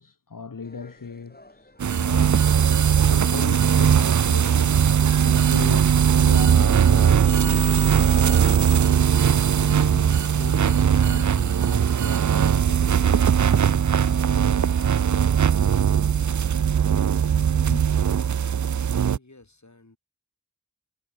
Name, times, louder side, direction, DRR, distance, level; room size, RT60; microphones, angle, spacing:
voice 1, 0.0-2.4 3.1-4.9 5.2-9.1 9.5-14.2 17.6-17.9, left 5 dB, 80° left, 1.3 m, -38 dB
sound 1, 0.6-11.3, left 1 dB, 30° left, 4.1 m, -56 dB
sound 2, 1.8-19.2, right 8 dB, 65° right, 0.5 m, -19 dB
voice 2, 18.3-20.0, left 2 dB, 60° left, 7.4 m, -55 dB
wide cardioid pair, 50°, 32 cm